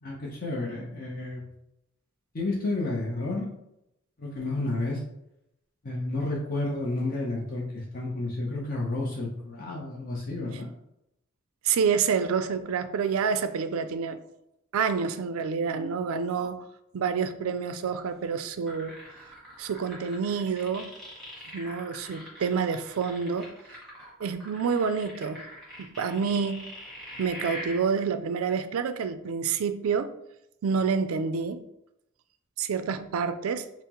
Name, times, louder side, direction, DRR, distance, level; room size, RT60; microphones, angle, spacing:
voice 1, 0.0-1.4 2.3-3.5 4.2-5.0 5.8-10.7, left 2 dB, 45° left, 0.7 m, -31 dB
voice 2, 11.6-14.2 14.7-16.6 16.9-19.0 19.6-20.9 21.5-23.5 24.2-25.4 25.8-26.6 27.2-30.2 30.6-31.6 32.6-33.7, right 6 dB, 85° right, 0.4 m, -28 dB
sound 1, 18.7-27.8, equal, ahead, 1.5 m, -43 dB
5.6 x 2.0 x 2.9 m
head